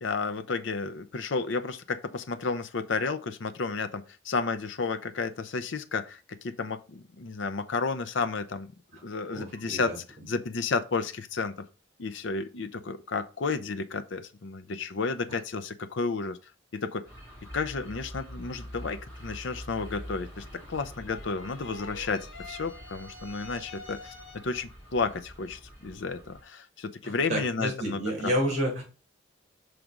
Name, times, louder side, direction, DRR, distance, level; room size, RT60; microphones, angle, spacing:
voice 1, 0.0-8.7 9.0-9.9 10.3-11.7 12.0-16.4 16.7-17.0 17.5-28.4, left 4 dB, 65° left, 0.6 m, -32 dB
voice 2, 9.3-10.0 15.3-15.4 27.0-28.8, equal, 35° right, 2.5 m, -30 dB
sound 1, 17.1-26.4, equal, 10° left, 2.5 m, -46 dB
sound 2, 20.8-24.7, left 2 dB, 85° left, 1.5 m, -47 dB
6.1 x 3.3 x 5.1 m
head